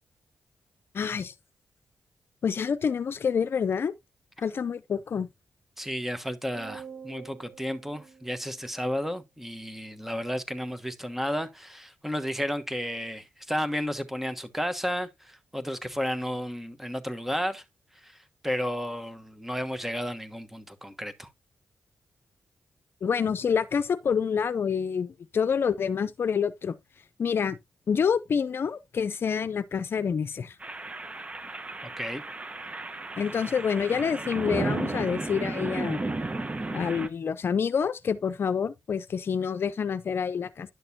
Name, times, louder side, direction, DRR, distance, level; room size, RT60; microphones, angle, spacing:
voice 1, 0.9-1.3 2.4-3.9 4.4-5.3 23.0-26.8 27.2-27.6 27.9-30.6 33.2-36.0 36.7-40.7, left 6 dB, 60° left, 0.6 m, -27 dB
voice 2, 5.8-17.6 17.9-18.2 18.4-21.3 31.8-32.2, equal, 5° right, 1.2 m, -32 dB
sound 1, 6.5-9.1, right 6 dB, 85° right, 5.6 m, -46 dB
sound 2, 30.6-37.1, right 2 dB, 30° right, 1.0 m, -33 dB
10.5 x 6.5 x 2.8 m
cardioid pair, 75°, 4 cm